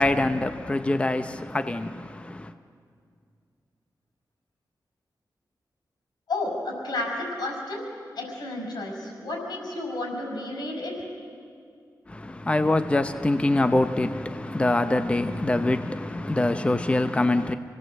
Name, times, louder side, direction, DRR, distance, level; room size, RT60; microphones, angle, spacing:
voice 1, 0.0-2.5 12.1-17.5, left 2 dB, 15° left, 0.7 m, -24 dB
voice 2, 6.3-7.9 8.2-10.9, left 2 dB, 90° left, 6.1 m, -31 dB
27.5 x 17.5 x 7.7 m
wide cardioid pair, 115°, 7 cm